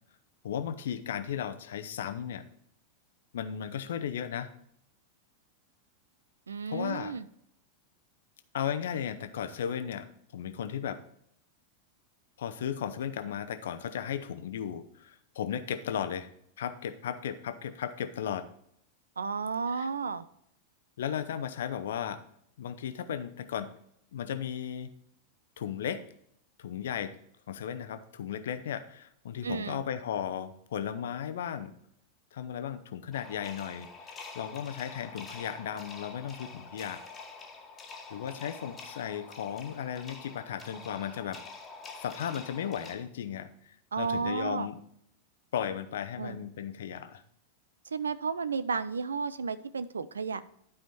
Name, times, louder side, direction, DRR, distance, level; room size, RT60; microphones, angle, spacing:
voice 1, 0.4-2.4 3.3-4.5 6.7-7.1 8.5-10.1 10.3-11.0 12.4-16.3 16.6-18.5 19.7-19.9 21.0-22.2 22.6-23.7 24.1-24.9 25.6-26.0 26.6-27.1 27.5-31.7 32.3-37.0 38.1-41.4 42.0-44.8 45.5-47.2, left 9 dB, 60° left, 10 dB, 0.8 m, -35 dB
voice 2, 6.5-7.3 19.2-20.2 29.4-29.8 43.9-44.7 46.2-46.4 47.9-50.4, right 5 dB, 70° right, 15 dB, 0.5 m, -32 dB
sound 1, 33.1-43.0, left 4 dB, 20° left, 1.6 m, -46 dB
12.0 x 5.1 x 4.2 m, 0.70 s
figure-of-eight pair, 90°, 0 cm